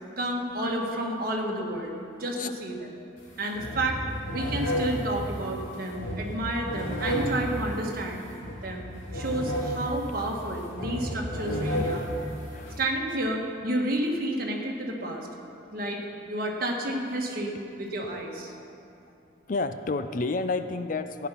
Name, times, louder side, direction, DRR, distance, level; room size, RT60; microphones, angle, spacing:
voice 1, 0.2-2.9 3.4-4.0 4.3-8.2 8.6-8.9 9.1-12.1 12.8-15.3 15.7-18.5, right 1 dB, 50° right, 0 dB, 1.6 m, -30 dB
sound 1, 3.2-3.3 3.6-12.8, equal, 85° left, 2.6 m, -32 dB
voice 2, 19.5-21.3, left 3 dB, 45° left, 10 dB, 0.4 m, -30 dB
15.0 x 9.6 x 5.8 m, 2.7 s
head